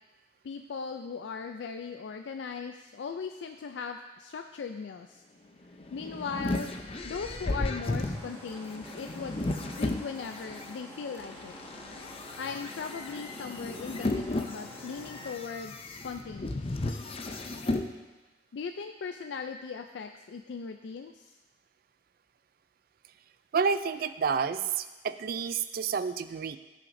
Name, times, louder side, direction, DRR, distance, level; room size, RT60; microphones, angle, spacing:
voice 1, 0.4-5.2 5.9-6.7 7.0-9.4 9.8-11.5 12.4-16.8 18.5-21.4, left 5 dB, 90° left, 6 dB, 0.4 m, -38 dB
sound 1, 5.6-10.7 11.2-17.9, left 2 dB, 35° left, 0.5 m, -34 dB
sound 2, 8.0-15.3, equal, 15° left, 1.6 m, -47 dB
voice 2, 23.5-26.6, right 6 dB, 55° right, 12 dB, 0.4 m, -29 dB
15.5 x 5.8 x 2.6 m, 1.2 s
head